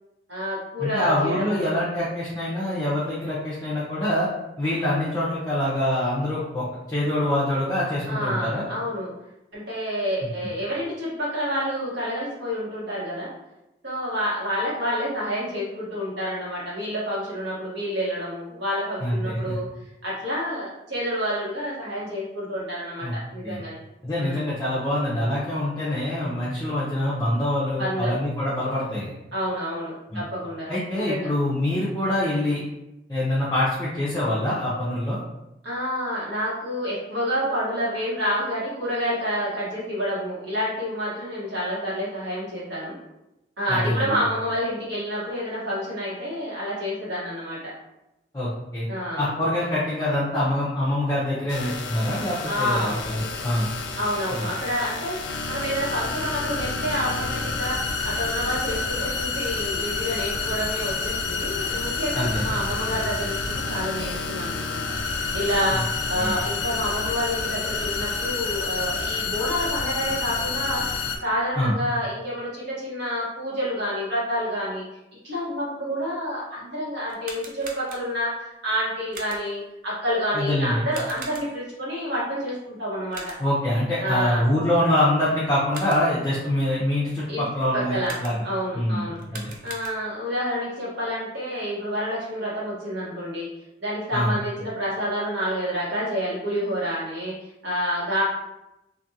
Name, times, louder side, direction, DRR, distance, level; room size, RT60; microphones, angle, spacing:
voice 1, 0.3-1.8 8.1-9.1 9.5-13.3 13.8-19.7 20.0-23.8 24.2-24.5 27.7-28.1 29.3-30.7 30.9-31.3 35.6-43.0 43.6-47.7 48.9-49.3 52.4-53.1 54.0-55.2 55.5-64.8 65.1-70.8 71.2-74.8 75.2-83.3 84.0-84.4 87.3-87.4 87.7-88.1 88.4-89.2 89.6-93.5 93.8-97.3 97.6-98.2, equal, 85° right, -8 dB, 1.3 m, -28 dB
voice 2, 0.8-4.3 4.6-8.6 10.2-10.3 19.0-19.5 23.0-23.1 23.4-23.6 24.0-29.1 30.1-30.2 30.7-32.6 33.1-35.2 43.7-44.2 48.3-48.9 49.2-53.7 54.4-54.5 62.1-62.5 65.7-65.8 66.2-66.4 71.6-71.7 80.3-80.8 83.4-88.4 88.7-89.5 94.1-94.3, left 1 dB, 20° left, -8 dB, 0.5 m, -25 dB
sound 1, 51.5-71.2, left 4 dB, 85° left, 0.4 m, -29 dB
sound 2, 77.0-78.3 79.1-79.7 80.9-81.8 83.1-83.7 85.5-86.2 88.0-88.6 89.1-90.3, right 3 dB, 50° right, 0.4 m, -41 dB
2.5 x 2.4 x 2.7 m, 0.93 s
head